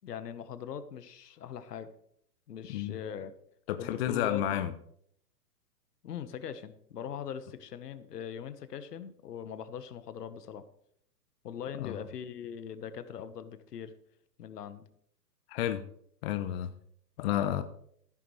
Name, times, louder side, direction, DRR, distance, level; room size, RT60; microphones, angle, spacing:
voice 1, 0.0-1.9 2.5-3.3 3.8-4.6 6.0-10.6 11.4-13.9 14.4-14.8, left 8 dB, 70° left, 12 dB, 1.4 m, -41 dB
voice 2, 3.7-4.7 11.8-12.0 15.5-15.8 16.2-16.7 17.2-17.6, left 11 dB, 40° left, 10 dB, 0.8 m, -31 dB
15.5 x 10.0 x 3.2 m, 0.67 s
hypercardioid pair, 130°, 50 cm